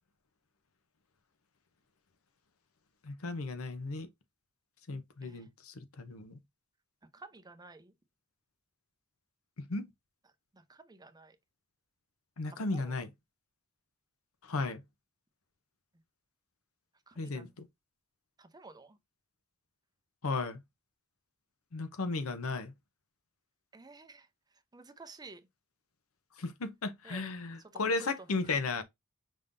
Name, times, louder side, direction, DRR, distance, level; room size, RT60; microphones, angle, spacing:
voice 1, 3.0-4.1 4.9-6.4 9.7-9.9 12.4-13.1 14.5-14.8 17.2-17.6 20.2-20.6 21.7-22.7 26.4-28.8, left 3 dB, 80° left, 0.8 m, -35 dB
voice 2, 7.1-7.9 10.5-11.4 12.5-13.0 17.1-17.5 18.4-19.0 23.7-24.3 24.7-25.4 27.0-27.3 27.7-28.7, right 3 dB, 20° right, 0.7 m, -52 dB
5.4 x 3.7 x 2.6 m
head